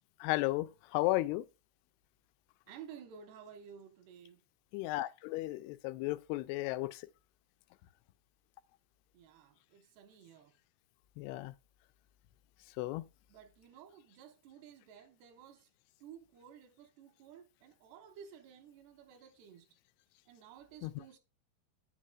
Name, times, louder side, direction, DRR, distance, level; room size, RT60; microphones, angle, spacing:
voice 1, 0.2-1.4 4.7-7.1 11.2-11.5 12.8-13.1 20.8-20.9, left 18 dB, 85° left, 2.6 m, -34 dB
voice 2, 2.7-4.4 9.1-10.5 13.3-15.7 16.0-19.7 20.3-21.2, right 8 dB, 90° right, 3.1 m, -54 dB
9.4 x 8.4 x 2.3 m
omnidirectional pair, 4.6 m